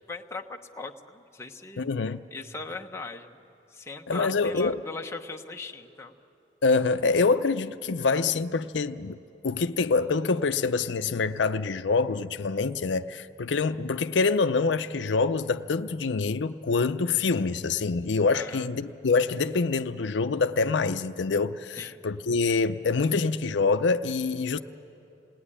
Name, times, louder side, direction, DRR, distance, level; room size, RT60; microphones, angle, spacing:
voice 1, 0.1-1.9 2.3-3.4 3.7-6.1 18.3-18.7 21.8-22.0, left 3 dB, 15° left, 1.0 m, -39 dB
voice 2, 1.8-2.2 4.1-4.8 6.6-9.2 9.4-24.6, left 4 dB, 70° left, 0.6 m, -25 dB
27.5 x 19.0 x 10.0 m
head